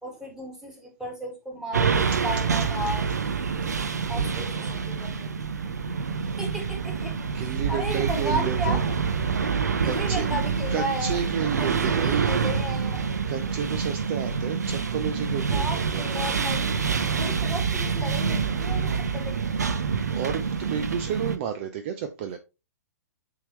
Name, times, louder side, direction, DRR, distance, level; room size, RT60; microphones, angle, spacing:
voice 1, 0.0-3.0 4.1-5.3 6.4-7.4 7.7-8.9 9.8-11.2 11.6-13.0 15.5-19.4, equal, 5° right, 2.4 m, -34 dB
sound 1, 1.7-21.4, right 6 dB, 70° right, 0.9 m, -27 dB
voice 2, 4.1-5.0 7.3-8.8 9.8-10.3 10.7-12.3 13.3-16.0 20.1-22.4, right 8 dB, 40° right, 0.7 m, -32 dB
8.4 x 3.8 x 3.2 m
figure-of-eight pair, 115°, 9 cm